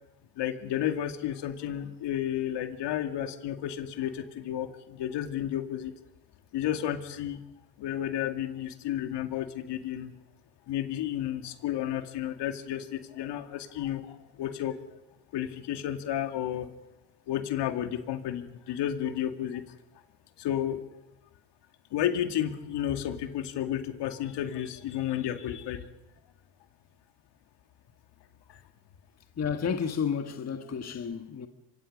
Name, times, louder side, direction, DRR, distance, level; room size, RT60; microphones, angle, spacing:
voice 1, 0.4-5.9 6.5-7.4 7.8-10.1 10.7-14.8 15.3-16.7 17.3-19.6 20.4-20.8 21.9-25.8 28.5-28.6, left 11 dB, 60° left, 2.2 m, -32 dB
voice 2, 29.4-31.5, left 7 dB, 30° left, 1.6 m, -31 dB
25.5 x 23.5 x 5.3 m
supercardioid pair, 85°, 48 cm